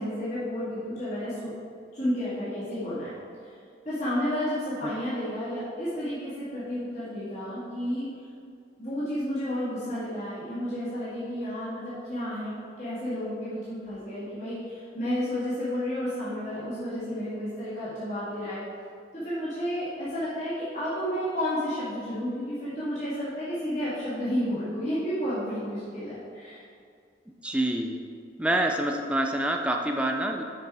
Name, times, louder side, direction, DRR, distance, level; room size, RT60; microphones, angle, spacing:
voice 1, 0.0-1.5 1.9-3.1 3.4-3.5 3.9-8.1 8.8-12.5 12.8-18.6 19.1-26.6, equal, 40° left, -11 dB, 1.9 m, -31 dB
voice 2, 27.4-28.0 28.4-30.4, right 1 dB, 5° right, 2 dB, 0.4 m, -26 dB
6.7 x 6.1 x 4.8 m, 2.3 s
head